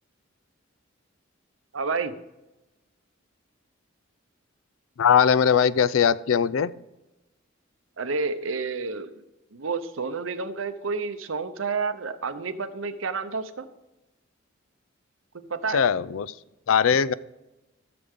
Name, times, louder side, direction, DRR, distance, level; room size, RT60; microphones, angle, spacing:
voice 1, 1.7-2.1 8.0-9.2 9.5-13.7 15.3-15.8, right 4 dB, 80° right, 10 dB, 0.8 m, -30 dB
voice 2, 5.0-6.7 15.7-16.3 16.7-17.1, left 7 dB, 90° left, 18 dB, 0.4 m, -20 dB
14.5 x 6.9 x 3.6 m, 1.0 s
head